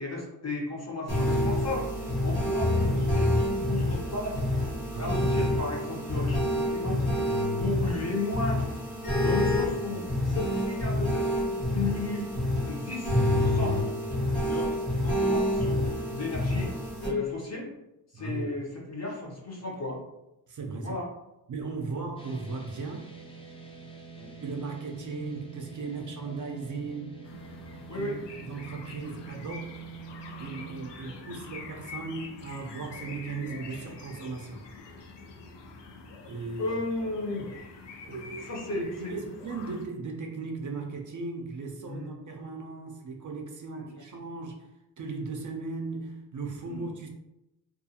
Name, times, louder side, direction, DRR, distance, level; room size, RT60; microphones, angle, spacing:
voice 1, 0.0-4.4 4.9-7.2 7.6-8.6 9.2-12.3 12.6-13.8 14.4-16.7 17.0-17.7 18.1-20.0 20.7-21.1 24.2-24.3 26.2-26.3 27.9-28.2 36.6-37.9 38.4-39.1 41.9-42.2 43.7-43.9 46.6-46.8, left 2 dB, 40° left, -2 dB, 0.8 m, -34 dB
sound 1, 1.1-17.1, left 1 dB, 60° left, 1.2 m, -27 dB
voice 2, 4.9-5.5 9.9-10.5 18.1-18.5 20.5-20.9 21.5-23.1 24.4-27.2 27.9-28.2 28.5-29.8 30.4-34.6 36.3-36.8 38.1-44.7 45.0-47.1, right 4 dB, 50° right, 2 dB, 0.4 m, -37 dB
sound 2, 22.2-30.9, right 5 dB, 15° left, 0.4 m, -46 dB
sound 3, 27.2-39.9, left 4 dB, 80° left, 0.5 m, -45 dB
2.4 x 2.3 x 2.7 m, 0.92 s
wide cardioid pair, 85°, 42 cm